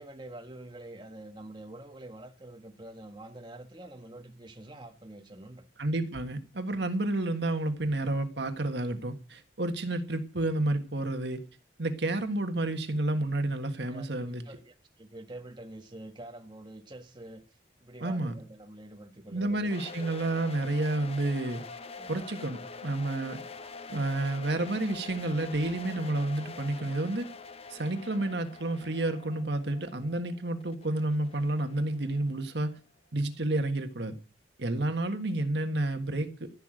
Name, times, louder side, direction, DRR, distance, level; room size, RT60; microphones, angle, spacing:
voice 1, 0.0-5.6 13.9-17.4 17.8-19.7 21.9-22.1, right 1 dB, 25° right, 1.6 m, -46 dB
voice 2, 5.8-11.4 11.8-14.4 18.0-18.3 19.3-21.6 22.1-23.4 23.9-27.3 27.7-32.8 33.1-34.1 34.6-36.6, right 2 dB, 65° right, 1.6 m, -30 dB
sound 1, 19.7-32.6, left 4 dB, 35° left, 0.8 m, -45 dB
15.0 x 6.7 x 9.0 m
head